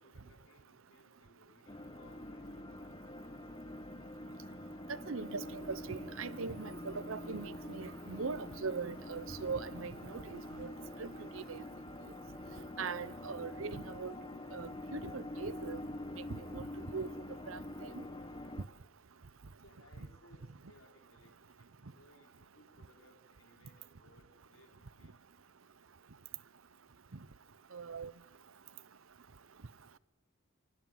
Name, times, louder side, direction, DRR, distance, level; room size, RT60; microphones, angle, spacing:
voice 1, 0.0-2.9 19.6-25.1, left 1 dB, 75° left, 4.2 m, -64 dB
sound 1, 1.7-18.7, left 1 dB, 25° left, 1.1 m, -46 dB
voice 2, 5.1-10.7 11.0-11.6 12.8-14.1 14.5-15.8 16.3-16.6 16.9-17.1 17.5-17.6 17.9-18.0 27.7-28.1, right 5 dB, 70° right, 0.8 m, -41 dB
Fire, 7.3-11.0, left 1 dB, 60° left, 7.7 m, -66 dB
28.5 x 16.5 x 7.8 m
head